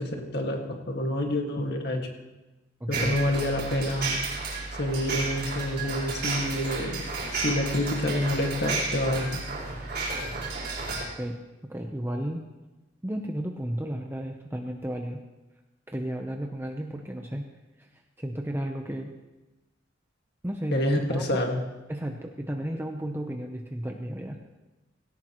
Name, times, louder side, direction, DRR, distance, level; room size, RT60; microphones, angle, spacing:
voice 1, 0.0-2.1 2.9-4.2 4.8-7.0 7.3-9.4 20.7-21.6, left 1 dB, 60° left, 2 dB, 1.9 m, -28 dB
voice 2, 2.8-3.2 11.0-11.4 11.7-12.4 13.0-15.2 15.9-17.4 17.8-17.9 18.2-19.1 20.4-21.4 21.9-24.4, right 1 dB, 10° right, 2 dB, 0.8 m, -33 dB
sound 1, 2.9-11.0, right 3 dB, 55° right, 4.2 m, -32 dB
17.5 x 17.0 x 3.1 m, 1.1 s
head